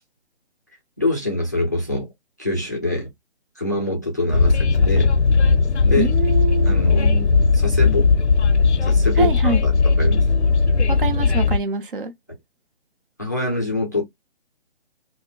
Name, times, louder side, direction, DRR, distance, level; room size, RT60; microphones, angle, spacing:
voice 1, 1.0-2.1 2.4-3.1 3.6-5.1 5.9-6.1 6.7-8.1 8.8-10.3 13.2-14.0, left 2 dB, 15° left, 0.4 m, -24 dB
Train, 4.3-11.6, left 4 dB, 85° left, 0.6 m, -17 dB
voice 2, 6.0-6.8 9.2-9.6 10.9-12.1, right 5 dB, 50° right, 0.8 m, -25 dB
3.9 x 2.1 x 2.3 m
figure-of-eight pair, 155°, 33 cm